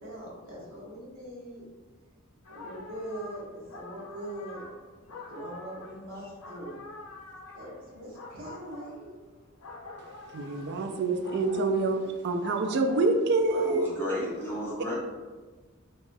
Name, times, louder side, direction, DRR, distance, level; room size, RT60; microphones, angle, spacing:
voice 1, 0.0-1.7 2.5-4.6 5.3-6.8 7.5-9.1 10.3-10.9 11.7-12.5, right 1 dB, 80° right, -5 dB, 1.0 m, -42 dB
sound 1, 2.4-13.3, left 2 dB, 80° left, 0.5 m, -46 dB
voice 2, 10.3-13.9, right 3 dB, 55° right, 5 dB, 0.3 m, -26 dB
voice 3, 13.5-15.0, left 1 dB, 10° left, -8 dB, 0.5 m, -33 dB
3.2 x 2.3 x 2.6 m, 1.4 s
head